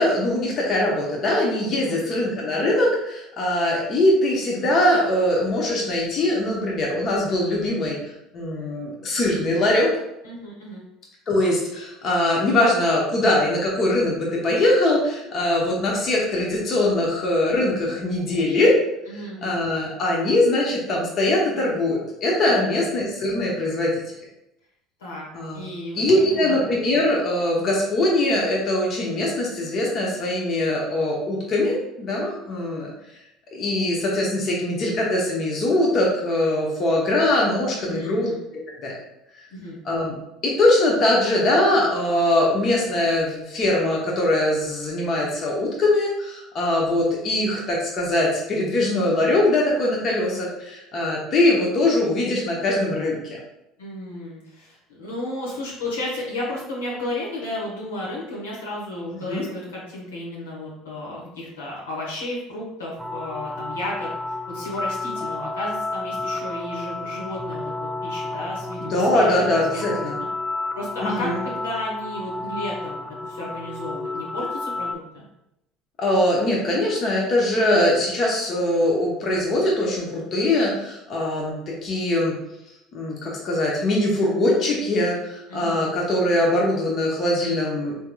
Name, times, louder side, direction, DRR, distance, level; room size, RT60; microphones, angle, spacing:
voice 1, 0.0-8.0 8.3-9.9 11.3-18.7 19.4-23.9 25.3-25.6 25.9-32.9 33.5-38.3 38.8-38.9 39.8-40.2 40.4-53.4 59.3-59.4 68.9-70.2 71.0-71.4 76.0-82.3 82.9-87.9, left 1 dB, 45° left, -2 dB, 0.8 m, -22 dB
voice 2, 10.2-10.8 19.1-19.5 22.4-22.8 25.0-25.2 25.5-26.6 37.8-38.4 39.5-39.8 53.8-70.3 70.7-75.2 85.5-85.9, left 1 dB, 85° left, -5 dB, 1.0 m, -33 dB
sound 1, 63.0-75.0, left 2 dB, ahead, 0.3 m, -31 dB
3.6 x 2.8 x 2.2 m, 0.86 s
hypercardioid pair, 70°, 0 cm